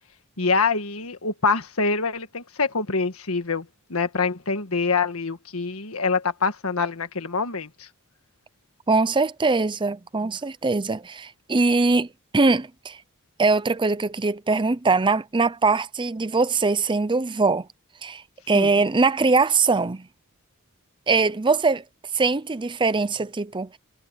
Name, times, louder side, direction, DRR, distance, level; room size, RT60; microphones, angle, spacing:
voice 1, 0.4-3.7 3.9-7.9 18.5-18.7, left 4 dB, 70° left, 1.7 m, -25 dB
voice 2, 8.9-12.1 12.3-13.0 13.4-17.7 18.0-20.1 21.1-21.8 22.1-23.8, right 3 dB, 20° right, 0.6 m, -22 dB
head